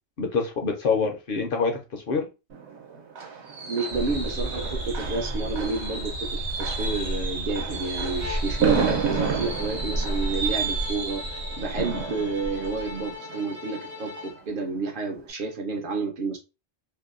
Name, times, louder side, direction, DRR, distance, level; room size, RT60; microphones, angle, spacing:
voice 1, 0.2-2.3, left 5 dB, 60° left, 4 dB, 0.7 m, -26 dB
Fireworks, 2.5-14.2 14.6-14.9 15.1-15.2, right 5 dB, 85° right, 1.0 m, -31 dB
voice 2, 3.7-16.4, right 3 dB, 60° right, 2 dB, 0.6 m, -30 dB
sound 1, 3.9-13.1, right 1 dB, 75° left, 1.1 m, -33 dB
Bowed string instrument, 8.2-14.4, left 4 dB, 20° right, 0.4 m, -41 dB
2.7 x 2.1 x 2.4 m, 0.27 s
omnidirectional pair, 1.1 m